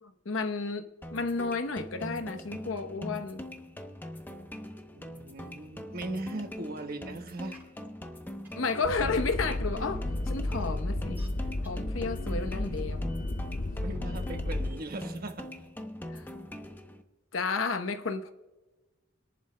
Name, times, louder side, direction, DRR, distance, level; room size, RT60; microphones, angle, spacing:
voice 1, 0.0-3.4 8.5-11.2 11.6-13.0 16.1-16.2 17.3-18.3, left 4 dB, 80° left, 0.9 m, -32 dB
sound 1, 1.0-17.0, left 1 dB, 10° left, 0.8 m, -42 dB
voice 2, 4.9-7.6 8.5-8.9 12.2-12.7 13.8-15.5, right 2 dB, 50° right, 1.2 m, -39 dB
sound 2, 6.8-6.9 7.5-7.9 8.4-9.0 9.6-9.7 10.5-10.6 11.2-11.3 11.6-11.7, right 1 dB, 10° right, 3.0 m, -53 dB
sound 3, 8.8-14.7, left 2 dB, 40° left, 0.6 m, -33 dB
27.5 x 11.0 x 2.2 m
head